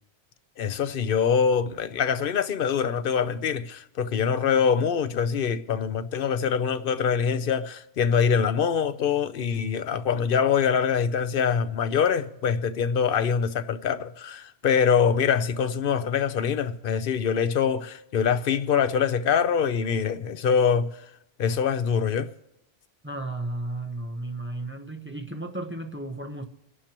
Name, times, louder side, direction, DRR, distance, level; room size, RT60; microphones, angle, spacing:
voice 1, 0.6-21.0 21.4-22.3, left 7 dB, 60° left, 0.8 m, -24 dB
voice 2, 23.0-26.4, right 2 dB, 10° right, 0.9 m, -34 dB
26.5 x 11.0 x 3.0 m
omnidirectional pair, 1.1 m